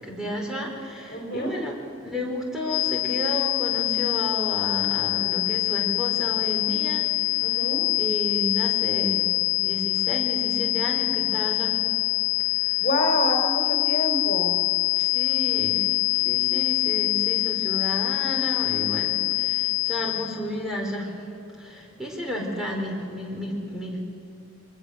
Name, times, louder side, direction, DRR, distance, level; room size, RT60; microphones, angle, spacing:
voice 1, 0.0-7.7 7.9-9.3 9.6-11.8 12.5-12.9 15.0-21.2 21.5-24.0, equal, 5° right, -1 dB, 4.8 m, -32 dB
voice 2, 1.1-1.6 7.4-7.9 12.8-14.6, equal, 40° left, 2 dB, 4.1 m, -27 dB
sound 1, 2.7-20.4, left 22 dB, 90° left, 0.7 m, -25 dB
24.5 x 21.0 x 6.6 m, 2.8 s
head